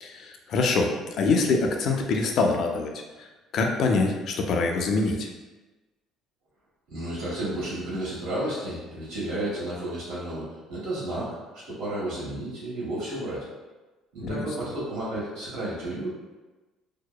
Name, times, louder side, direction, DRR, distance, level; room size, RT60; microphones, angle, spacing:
voice 1, 0.0-2.9 3.2-3.3 3.5-5.3 14.2-14.5, left 3 dB, 55° left, 2 dB, 0.3 m, -24 dB
voice 2, 6.9-13.5 14.1-16.1, right 1 dB, 75° right, -8 dB, 1.3 m, -32 dB
2.8 x 2.0 x 2.2 m, 1.2 s
cardioid pair, 110°, 0 cm